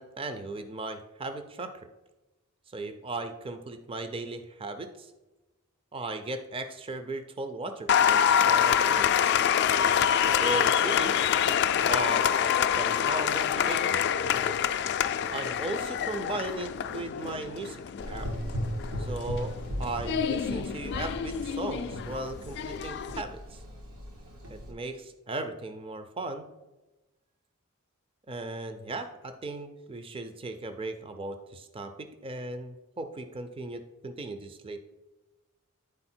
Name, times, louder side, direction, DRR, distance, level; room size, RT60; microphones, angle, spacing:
voice 1, 0.0-1.7 2.7-5.1 5.9-9.3 10.4-11.2 11.8-14.0 15.3-17.8 18.1-18.3 19.0-19.5 19.8-23.6 24.5-26.5 28.3-34.8, right 2 dB, 25° right, 8 dB, 0.4 m, -37 dB
Applause, 7.9-23.2, left 8 dB, 50° left, 0.3 m, -26 dB
Gurgling / Engine, 18.0-24.7, equal, 80° right, 1.4 m, -37 dB
9.8 x 4.2 x 4.3 m, 1.1 s
head